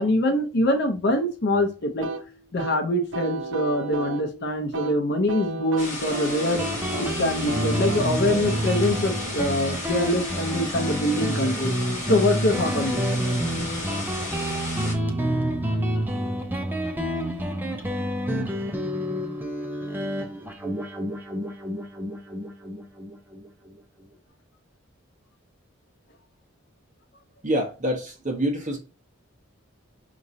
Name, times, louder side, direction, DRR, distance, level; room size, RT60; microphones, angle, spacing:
voice 1, 0.0-2.1 2.5-6.7 7.0-11.7 12.1-13.0, left 1 dB, 55° left, 0.7 m, -24 dB
sound 1, 2.0-10.6, right 1 dB, 70° right, 0.7 m, -34 dB
sound 2, 5.8-14.9, left 2 dB, 35° left, 1.6 m, -34 dB
Guitar, 6.6-23.8, equal, 10° right, 0.5 m, -28 dB
voice 2, 27.4-28.8, equal, 35° right, 1.1 m, -26 dB
5.1 x 3.0 x 2.7 m
head